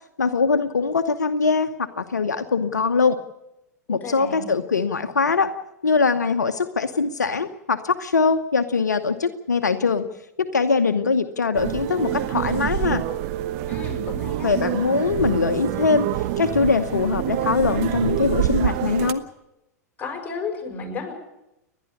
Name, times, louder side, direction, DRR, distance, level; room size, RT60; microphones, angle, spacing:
voice 1, 0.2-3.2 3.9-5.5 5.8-10.0 10.4-13.0 14.4-16.1 16.4-19.2, left 4 dB, 75° left, 9 dB, 0.9 m, -22 dB
voice 2, 4.0-4.4 13.7-14.5 20.0-21.1, left 4 dB, 20° left, 3 dB, 6.1 m, -32 dB
sound 1, 11.5-19.1, right 13 dB, 45° right, 1.1 m, -26 dB
30.0 x 11.0 x 8.4 m, 0.89 s
figure-of-eight pair, 95°, 9 cm